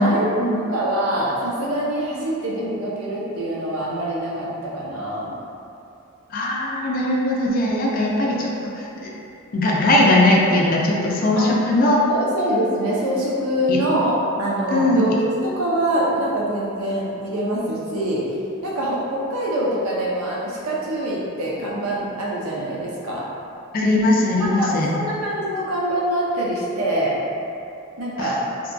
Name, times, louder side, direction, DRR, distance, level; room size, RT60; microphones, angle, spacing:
voice 1, 0.0-0.6 6.3-9.1 9.5-12.0 13.7-13.8 14.7-15.0 23.7-24.9 28.2-28.3, left 1 dB, 40° left, -3 dB, 0.3 m, -19 dB
voice 2, 0.7-5.4 7.8-8.3 11.4-11.5 12.0-15.2 15.6-18.4 18.6-23.2 24.4-27.2 28.0-28.4, right 1 dB, 85° right, -5 dB, 0.6 m, -24 dB
2.9 x 2.2 x 2.5 m, 2.7 s
head